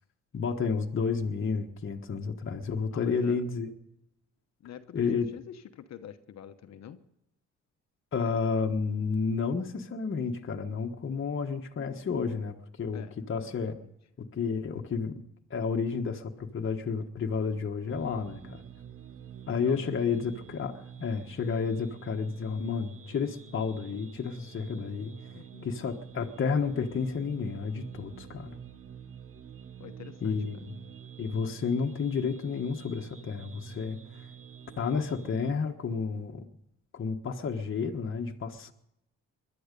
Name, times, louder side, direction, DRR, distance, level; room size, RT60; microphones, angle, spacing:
voice 1, 0.3-3.7 4.9-5.3 8.1-13.8 14.2-15.2 15.5-18.6 19.5-25.1 25.6-28.6 30.2-30.6 31.2-34.3 34.8-36.5 36.9-38.7, left 5 dB, 40° left, 2 dB, 1.4 m, -31 dB
voice 2, 2.9-3.4 4.6-7.0 12.9-13.1 13.4-13.9 19.5-19.9 25.3-25.9 29.8-30.6, left 9 dB, 60° left, 9 dB, 1.0 m, -47 dB
sound 1, 17.9-35.5, right 8 dB, 45° right, 1.1 m, -48 dB
21.0 x 12.0 x 5.3 m, 0.81 s
cardioid pair, 90°, 30 cm